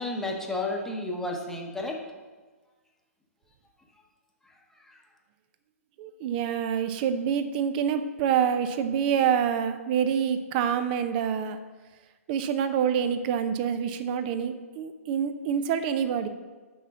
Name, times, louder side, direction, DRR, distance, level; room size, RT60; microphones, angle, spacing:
voice 1, 0.0-2.0 4.8-5.0, left 2 dB, 5° left, 0 dB, 1.0 m, -32 dB
voice 2, 6.0-11.6 12.3-16.3, right 8 dB, 35° right, 10 dB, 0.6 m, -26 dB
6.1 x 5.5 x 6.0 m, 1.3 s
figure-of-eight pair, 125°, 8 cm